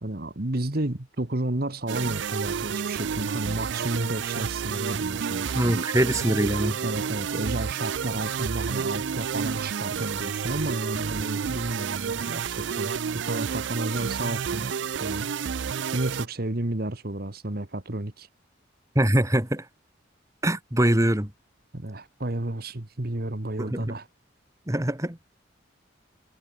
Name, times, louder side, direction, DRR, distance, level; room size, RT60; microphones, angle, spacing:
voice 1, 0.0-5.9 6.8-12.9 13.2-14.7 15.0-15.3 15.9-18.3 21.7-24.1, right 1 dB, 50° right, 1.6 m, -31 dB
sound 1, 1.9-16.3, right 6 dB, 70° right, 0.5 m, -30 dB
voice 2, 5.5-6.8 19.0-19.7 20.4-21.3 23.6-23.9 24.7-25.2, right 1 dB, 15° right, 1.9 m, -23 dB
head